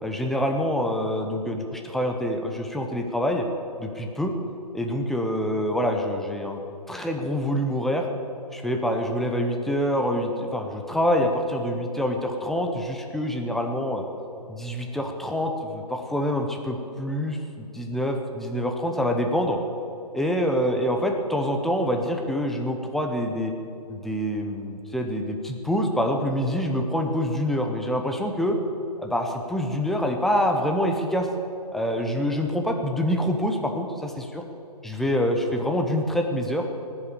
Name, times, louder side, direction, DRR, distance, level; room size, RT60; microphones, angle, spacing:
voice 1, 0.0-3.4 3.8-4.3 4.7-6.6 6.9-8.1 8.5-14.0 14.5-19.6 20.1-23.5 23.9-28.6 29.0-31.3 31.7-34.4 34.8-36.7, equal, ahead, 3 dB, 0.7 m, -26 dB
18.5 x 7.8 x 8.7 m, 2.8 s
hypercardioid pair, 150°, 20 cm